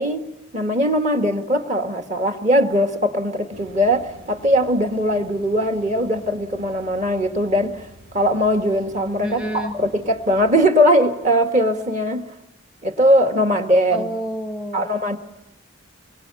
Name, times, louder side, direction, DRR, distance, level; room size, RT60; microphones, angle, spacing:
voice 1, 0.0-7.9 8.1-12.3 12.8-14.1 14.7-15.2, equal, 35° right, 1.8 m, -20 dB
sound 1, 3.5-10.7, equal, 75° right, 3.6 m, -47 dB
voice 2, 9.2-9.8 13.9-14.9, equal, 5° right, 0.9 m, -28 dB
25.5 x 24.0 x 8.4 m
head